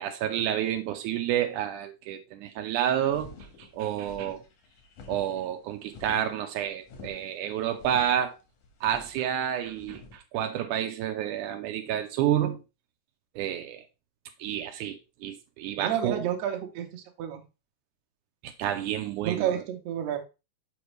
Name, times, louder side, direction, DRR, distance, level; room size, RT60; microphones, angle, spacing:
voice 1, 0.0-3.3 3.6-4.4 5.1-8.3 8.8-12.6 13.4-13.8 14.4-16.3 18.4-19.6, right 10 dB, 85° right, 2.2 m, -29 dB
sound 1, 3.1-10.2, left 4 dB, 85° left, 3.0 m, -48 dB
voice 2, 15.8-17.4 19.2-20.2, right 10 dB, 65° right, 2.1 m, -30 dB
7.0 x 5.1 x 3.2 m
omnidirectional pair, 3.5 m